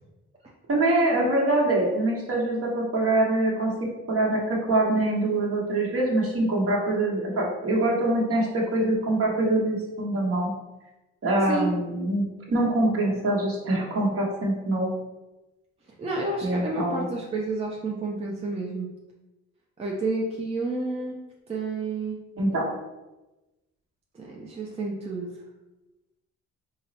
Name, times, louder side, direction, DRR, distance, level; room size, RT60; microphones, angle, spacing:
voice 1, 0.7-3.7 4.1-10.5 11.2-14.9 16.4-17.1 22.4-22.6, right 2 dB, 50° right, -3 dB, 1.2 m, -24 dB
voice 2, 16.0-18.9 19.8-21.2 21.5-22.2 24.1-25.4, right 2 dB, 20° right, -2 dB, 0.6 m, -30 dB
3.8 x 2.1 x 4.0 m, 1.1 s
cardioid pair, 90°, 30 cm